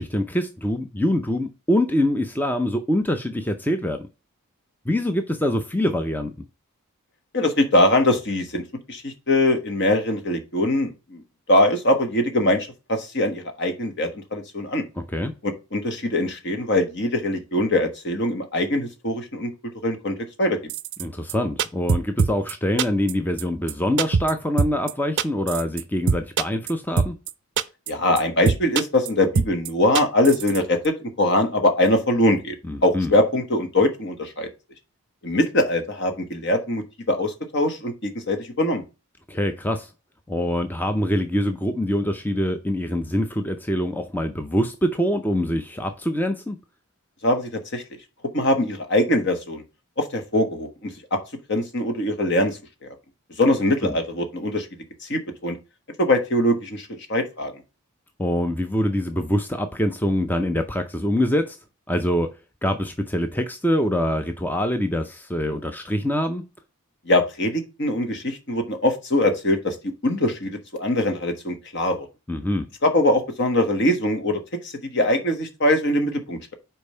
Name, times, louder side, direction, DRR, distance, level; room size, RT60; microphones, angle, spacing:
voice 1, 0.0-4.1 4.9-6.5 15.0-15.3 21.0-27.2 32.7-33.1 39.3-39.9 40.3-46.6 53.8-53.9 58.2-61.6 61.9-62.3 62.6-66.4 72.3-72.7, left 1 dB, 10° left, 0.5 m, -24 dB
voice 2, 7.3-8.6 8.9-11.2 11.5-14.8 15.4-19.5 19.8-20.6 27.9-32.5 32.8-34.5 35.2-38.8 47.2-47.8 48.3-49.6 50.0-51.2 51.5-52.9 53.4-54.7 55.0-55.5 56.0-57.5 67.1-69.8 70.0-72.1 72.8-76.5, left 1 dB, 50° left, 1.3 m, -22 dB
sound 1, 20.7-21.0 21.3-21.4 21.6-22.5 22.8-23.1 23.4-23.5 23.7-23.8 24.0-24.3 24.6-24.9 25.2-25.8 26.1-26.7 27.0-27.3 27.6-27.9 28.2-28.3 28.5-29.1 29.4-29.7 29.9-30.6 30.8-30.9, right 5 dB, 50° right, 0.4 m, -22 dB
5.2 x 4.4 x 5.4 m
head